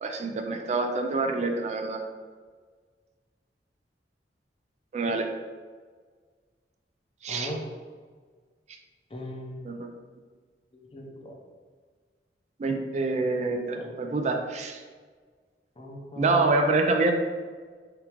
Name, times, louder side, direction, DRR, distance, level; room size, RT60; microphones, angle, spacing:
voice 1, 0.0-2.0 4.9-5.3 7.2-7.5 9.6-9.9 12.6-14.8 16.2-17.1, right 3 dB, 40° right, 4 dB, 0.3 m, -26 dB
voice 2, 7.3-7.7 9.1-9.7 10.9-11.3 13.7-14.0 15.8-16.5, equal, 30° left, 0 dB, 0.6 m, -38 dB
3.6 x 3.5 x 3.0 m, 1.5 s
head